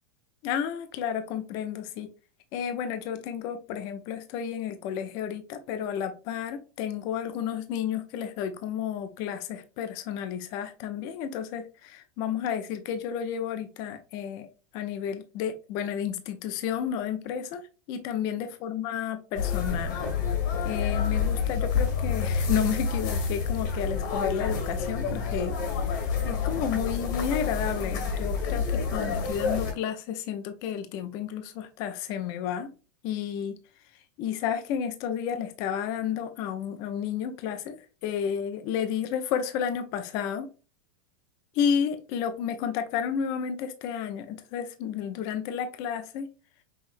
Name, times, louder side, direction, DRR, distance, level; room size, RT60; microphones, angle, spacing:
voice 1, 0.4-2.1 2.5-14.5 14.7-17.6 17.9-20.0 20.6-25.9 26.2-32.7 33.0-33.6 34.2-37.8 38.0-40.5 41.5-46.3, left 8 dB, 35° left, 0.5 m, -31 dB
sound 1, 19.3-29.7, left 5 dB, 60° left, 1.7 m, -28 dB
5.6 x 3.1 x 2.5 m
supercardioid pair, 170°, 11 cm